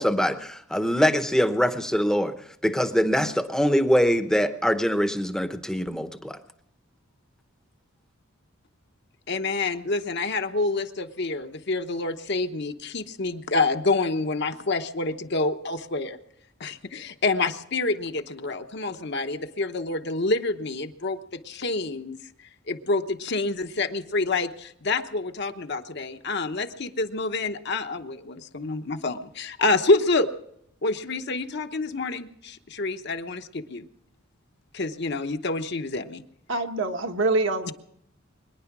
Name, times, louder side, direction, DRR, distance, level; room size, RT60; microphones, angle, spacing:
voice 1, 0.0-2.3 2.6-6.4, equal, 5° left, 0.8 m, -23 dB
voice 2, 9.3-16.2 16.6-21.2 21.4-22.2 22.7-30.3 30.8-33.8 34.7-36.2, left 3 dB, 55° left, 0.9 m, -27 dB
voice 3, 36.5-37.7, right 2 dB, 60° right, 1.3 m, -25 dB
23.0 x 10.5 x 6.0 m
head